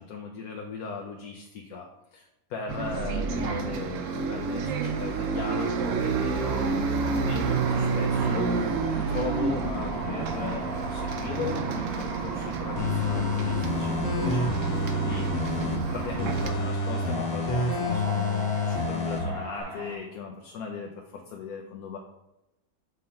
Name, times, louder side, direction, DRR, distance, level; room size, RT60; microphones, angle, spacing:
voice 1, 0.0-5.7 6.0-14.6 14.9-15.3 15.6-22.0, left 5 dB, 80° left, 1 dB, 1.2 m, -38 dB
Bus, 2.7-16.5, right 5 dB, 65° right, 0.9 m, -29 dB
sound 1, 6.3-19.9, right 2 dB, 50° right, 1.4 m, -37 dB
sound 2, 12.8-15.8 16.2-19.2 19.6-19.7, left 3 dB, 55° left, 1.3 m, -28 dB
6.5 x 3.8 x 4.3 m, 0.92 s
omnidirectional pair, 1.5 m